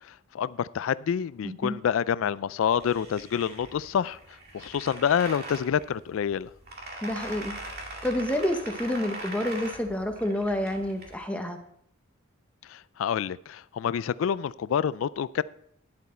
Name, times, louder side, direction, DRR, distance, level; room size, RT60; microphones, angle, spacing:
voice 1, 0.1-4.2 4.5-6.5 12.7-15.4, left 8 dB, 80° left, 0.3 m, -27 dB
voice 2, 1.4-1.7 7.0-7.6 8.0-11.6, left 1 dB, 5° left, 0.9 m, -29 dB
sound 1, 2.7-11.2, right 2 dB, 50° right, 2.3 m, -41 dB
11.0 x 8.1 x 4.3 m
head